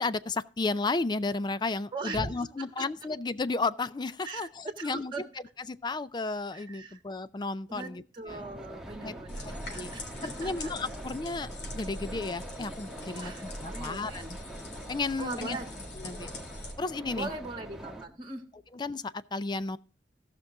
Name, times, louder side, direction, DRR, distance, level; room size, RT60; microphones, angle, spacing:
voice 1, 0.0-5.1 5.7-8.4 9.0-9.1 9.4-9.9 10.2-11.5 11.7-14.4 14.9-15.6 16.0-16.3 16.8-17.3 18.7-19.8, left 3 dB, 25° left, 0.4 m, -33 dB
voice 2, 1.9-2.3 2.8-2.9 4.2-5.2 6.5-7.0 7.7-10.7 13.1-14.3 15.2-15.7 17.1-18.4, right 3 dB, 25° right, 1.4 m, -40 dB
sound 1, 8.3-18.1, right 1 dB, 5° right, 1.3 m, -44 dB
sound 2, 9.3-16.7, left 1 dB, 75° left, 3.5 m, -43 dB
16.5 x 6.1 x 3.7 m
head